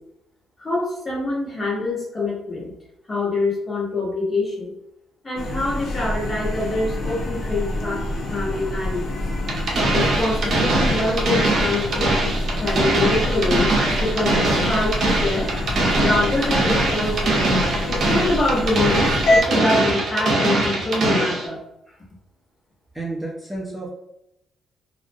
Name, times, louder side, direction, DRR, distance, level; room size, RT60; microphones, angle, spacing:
voice 1, 0.6-2.7 3.1-4.7 5.2-9.1 9.9-13.7 14.0-15.5 16.0-17.5 17.9-21.6 21.9-22.0, left 2 dB, 30° left, -4 dB, 1.0 m, -25 dB
sound 1, 5.4-19.4, left 1 dB, 70° left, 0.5 m, -26 dB
sound 2, 9.5-21.5, right 2 dB, 60° right, 0.7 m, -22 dB
voice 2, 22.9-24.0, right 2 dB, 10° right, -4 dB, 0.5 m, -31 dB
2.4 x 2.0 x 2.5 m, 0.82 s
cardioid pair, 90°, 0 cm